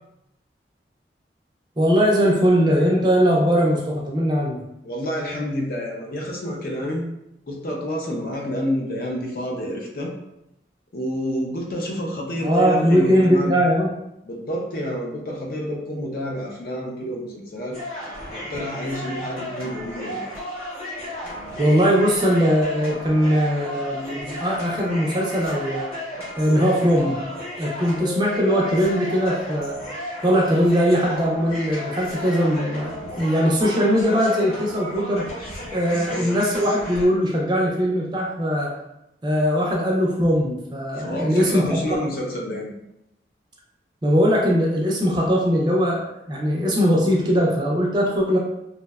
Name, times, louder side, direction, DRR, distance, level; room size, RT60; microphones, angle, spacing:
voice 1, 1.8-4.6 12.4-13.9 21.6-25.9 26.4-27.2 27.6-29.8 30.2-35.3 35.7-38.7 39.2-41.7 44.0-48.4, equal, 25° right, -2 dB, 0.4 m, -20 dB
voice 2, 4.8-7.1 7.5-10.1 10.9-13.6 14.2-17.8 18.3-20.3 35.9-36.3 40.9-42.7, equal, 55° left, 0 dB, 0.4 m, -29 dB
sound 1, 17.7-37.0, equal, 30° left, 0.9 m, -34 dB
2.6 x 2.1 x 2.2 m, 0.86 s
head